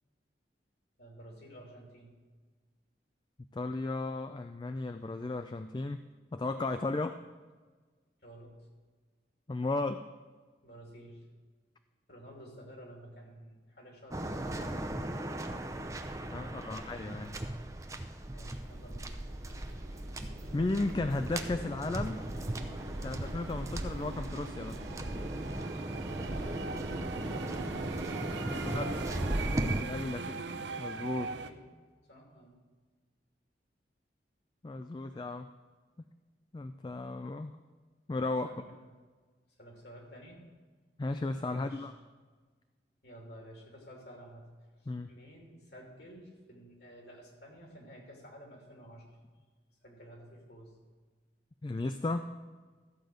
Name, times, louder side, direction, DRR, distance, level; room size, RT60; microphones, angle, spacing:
voice 1, 1.0-2.1 8.2-8.7 10.6-11.2 12.1-14.8 16.4-17.3 18.3-19.2 26.4-27.6 28.4-29.2 31.2-31.6 32.1-32.5 38.4-38.9 39.6-40.4 41.5-41.9 43.0-44.5 45.1-49.0 49.8-50.7, equal, 65° left, 0 dB, 2.9 m, -51 dB
voice 2, 3.5-6.0 6.3-7.3 9.5-10.0 16.3-17.4 19.5-19.8 20.5-22.2 23.0-24.8 28.7-28.9 29.8-30.4 30.8-31.3 34.6-35.5 36.5-37.5 38.1-38.5 41.0-41.9 44.9-45.1 51.6-52.3, left 2 dB, 25° left, 9 dB, 0.3 m, -35 dB
Waves surf, 14.1-29.8, right 1 dB, 20° right, 0.6 m, -37 dB
sound 1, 18.4-31.5, right 4 dB, 80° right, 0.7 m, -42 dB
14.0 x 5.2 x 7.8 m, 1.4 s
head